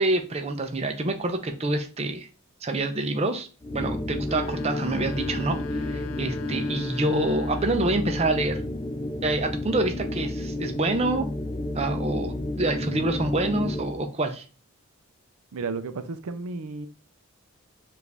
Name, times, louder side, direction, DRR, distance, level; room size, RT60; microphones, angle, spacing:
voice 1, 0.0-2.3 2.6-3.5 3.7-8.6 9.2-11.3 11.7-14.4, right 2 dB, 30° right, 0.5 m, -27 dB
sound 1, 3.6-14.0, left 1 dB, 20° left, 0.3 m, -31 dB
sound 2, 4.2-8.2, left 6 dB, 80° left, 0.6 m, -41 dB
voice 2, 15.5-16.9, right 4 dB, 80° right, 0.5 m, -33 dB
4.9 x 2.6 x 3.4 m
head